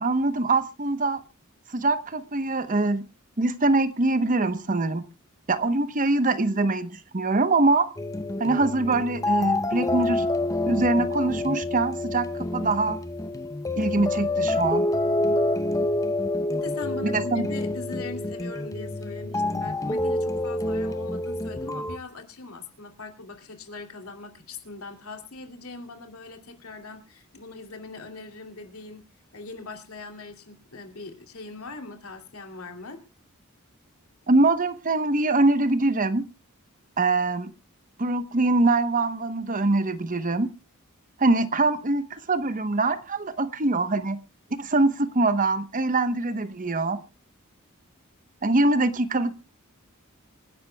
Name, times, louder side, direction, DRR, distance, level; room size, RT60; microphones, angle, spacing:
voice 1, 0.0-1.2 1.7-3.0 3.4-5.0 5.5-7.9 8.4-10.2 10.7-12.3 12.5-13.0 13.8-14.9 17.0-17.5 34.3-36.3 37.0-37.5 38.0-40.5 41.2-44.2 44.5-47.0 48.4-49.3, right 2 dB, 40° right, 11 dB, 1.0 m, -23 dB
sound 1, 8.0-22.0, left 2 dB, 15° left, 0.7 m, -27 dB
voice 2, 16.5-29.0 29.3-33.0, left 3 dB, 85° left, 4 dB, 2.8 m, -41 dB
26.5 x 11.0 x 2.3 m, 0.29 s
head